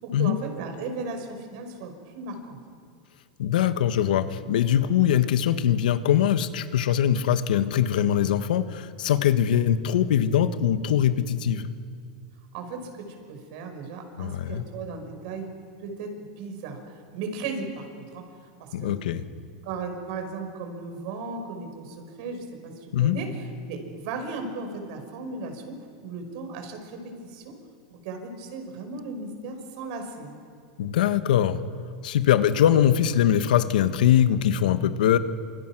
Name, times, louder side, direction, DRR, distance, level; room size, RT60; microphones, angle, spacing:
voice 1, 0.0-2.8 12.5-15.5 15.8-16.8 17.1-18.9 19.6-22.7 23.0-23.3 23.6-27.5 27.9-30.4, right 4 dB, 55° right, 5 dB, 5.8 m, -36 dB
voice 2, 3.4-11.7 14.2-14.6 18.7-19.2 22.9-23.2 30.8-31.6 32.0-35.2, left 10 dB, 85° left, 10 dB, 1.5 m, -22 dB
29.0 x 27.0 x 6.2 m, 2.2 s
supercardioid pair, 155°, 4 cm